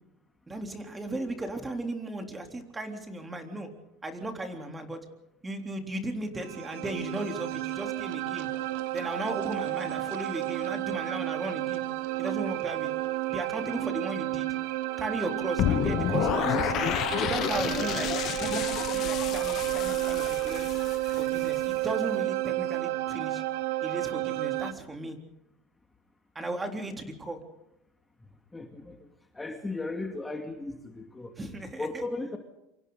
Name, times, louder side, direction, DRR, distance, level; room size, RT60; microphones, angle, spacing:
voice 1, 0.5-3.7 4.0-5.0 5.4-8.5 8.9-11.8 12.2-12.9 13.3-14.5 15.0-16.7 17.2-18.1 18.4-20.8 21.1-23.4 23.8-25.2 26.4-27.4 31.4-32.0, right 1 dB, 15° right, 4 dB, 3.6 m, -36 dB
sound 1, 6.4-24.7, right 17 dB, 80° right, 1.1 m, -31 dB
sound 2, 15.6-21.6, left 12 dB, 50° left, 0.9 m, -30 dB
voice 2, 28.5-29.1 29.3-31.3 31.8-32.4, left 2 dB, 10° left, 3 dB, 2.3 m, -36 dB
27.5 x 25.5 x 4.0 m, 0.87 s
supercardioid pair, 125°, 0 cm